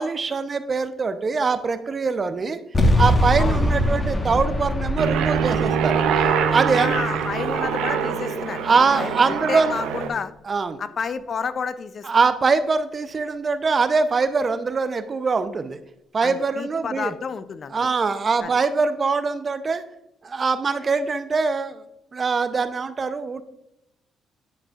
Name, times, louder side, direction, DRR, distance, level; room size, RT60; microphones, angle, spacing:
voice 1, 0.0-2.6 3.0-6.0 6.5-7.0 8.6-9.8 10.5-10.8 12.0-15.8 16.1-17.1 17.7-19.8 20.2-21.8 22.1-23.4, right 4 dB, 40° right, 11 dB, 0.6 m, -23 dB
sound 1, 2.7-7.9, left 1 dB, 25° left, 1.2 m, -23 dB
Aircraft, 5.0-10.1, right 7 dB, 85° right, 0.6 m, -24 dB
voice 2, 6.7-8.7 8.9-10.3 10.8-12.1 16.2-17.9 18.4-18.6, left 6 dB, 50° left, 14 dB, 0.4 m, -30 dB
10.5 x 4.8 x 2.4 m, 0.84 s
supercardioid pair, 70°, 0 cm